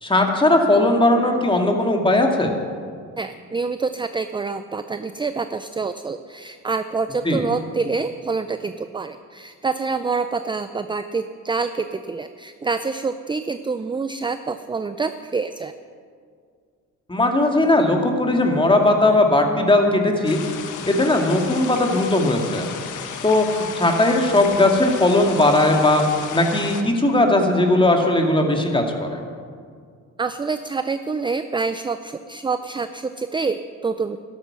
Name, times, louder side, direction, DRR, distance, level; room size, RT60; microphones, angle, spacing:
voice 1, 0.0-2.5 7.2-7.4 17.1-20.4 20.9-22.7 23.2-26.0 26.3-29.2, left 2 dB, 15° left, 2 dB, 2.2 m, -18 dB
voice 2, 3.2-15.7 30.2-34.2, right 4 dB, 15° right, 10 dB, 0.5 m, -26 dB
sound 1, 20.2-26.8, left 7 dB, 80° left, 1.3 m, -34 dB
12.5 x 12.0 x 6.1 m, 2.1 s
cardioid pair, 90°, 30 cm